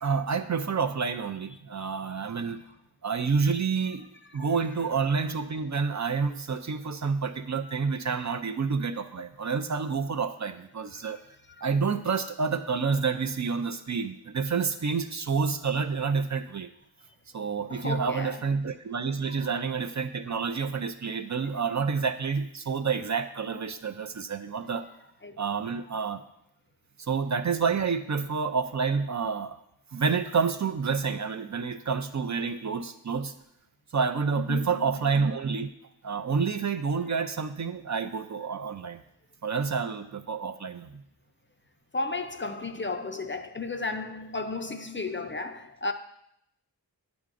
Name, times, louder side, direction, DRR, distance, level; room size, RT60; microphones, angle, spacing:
voice 1, 0.0-2.6 3.0-4.1 4.3-11.2 11.6-16.7 17.3-24.9 25.4-26.2 27.0-29.6 29.9-33.3 33.9-35.7 36.0-39.0 39.4-40.9, right 5 dB, 45° right, 0.4 m, -29 dB
voice 2, 17.7-18.4 25.2-25.4 34.5-35.0 41.9-45.9, left 3 dB, 30° left, 0.4 m, -34 dB
8.2 x 6.1 x 2.5 m
wide cardioid pair, 40°, 41 cm